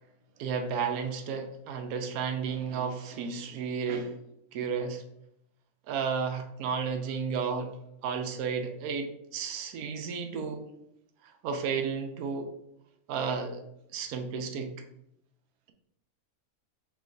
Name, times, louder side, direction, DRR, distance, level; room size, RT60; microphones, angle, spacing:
voice 1, 0.4-4.1 4.5-5.0 5.9-7.7 8.0-9.1 9.3-10.7 11.2-12.5 13.1-13.6 13.9-14.7, right 6 dB, 85° right, 6 dB, 1.1 m, -32 dB
3.1 x 3.0 x 3.7 m, 0.79 s
omnidirectional pair, 1.5 m